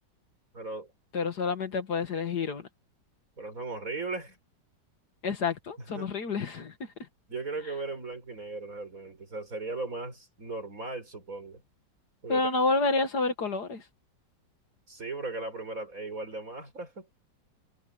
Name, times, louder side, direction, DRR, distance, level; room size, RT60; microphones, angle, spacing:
voice 1, 0.5-0.9 3.4-4.4 5.8-6.1 7.3-11.6 12.2-12.5 14.9-17.1, right 3 dB, 45° right, 5.4 m, -37 dB
voice 2, 1.1-2.6 5.2-6.7 12.3-13.8, left 4 dB, 60° left, 2.2 m, -28 dB
omnidirectional pair, 2.0 m